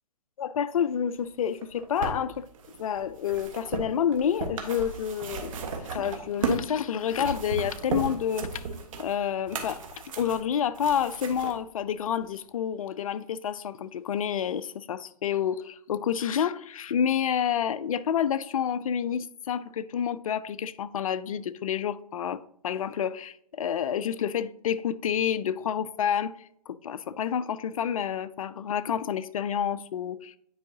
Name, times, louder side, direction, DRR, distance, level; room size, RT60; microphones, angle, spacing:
voice 1, 0.4-2.4 2.8-8.7 9.0-9.8 10.2-26.3 26.7-30.4, left 8 dB, 60° left, 0.4 m, -29 dB
sound 1, 1.5-6.7 7.0-11.5 12.3-12.4, right 4 dB, 55° right, 1.3 m, -35 dB
9.5 x 4.6 x 2.7 m
hypercardioid pair, 145°, 20 cm